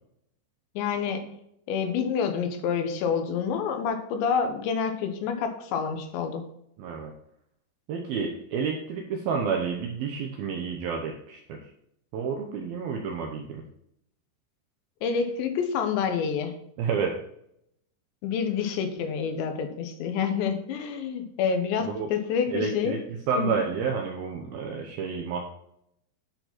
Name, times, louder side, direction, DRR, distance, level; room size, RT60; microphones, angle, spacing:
voice 1, 0.8-1.3 1.7-6.4 15.0-16.6 18.2-23.0 23.4-23.5, left 6 dB, 80° left, 6 dB, 3.4 m, -28 dB
voice 2, 6.8-7.1 7.9-11.6 12.1-13.6 16.8-17.2 21.8-22.1 22.5-23.0 23.3-25.5, right 5 dB, 70° right, 1 dB, 2.4 m, -30 dB
10.5 x 5.0 x 5.9 m, 0.74 s
omnidirectional pair, 5.2 m